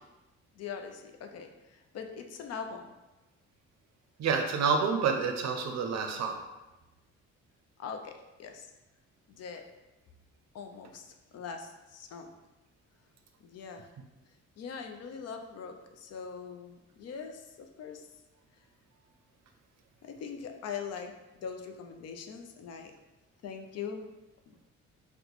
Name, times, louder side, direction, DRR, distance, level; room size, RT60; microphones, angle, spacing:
voice 1, 0.6-2.9 7.8-8.7 9.3-9.7 10.5-12.3 13.4-13.9 14.6-18.0 20.0-21.1 21.4-22.9 23.4-24.1, left 6 dB, 55° left, 5 dB, 0.5 m, -42 dB
voice 2, 4.2-6.4, right 5 dB, 60° right, 5 dB, 0.5 m, -28 dB
2.8 x 2.2 x 4.0 m, 1.0 s
cardioid pair, 90°, 30 cm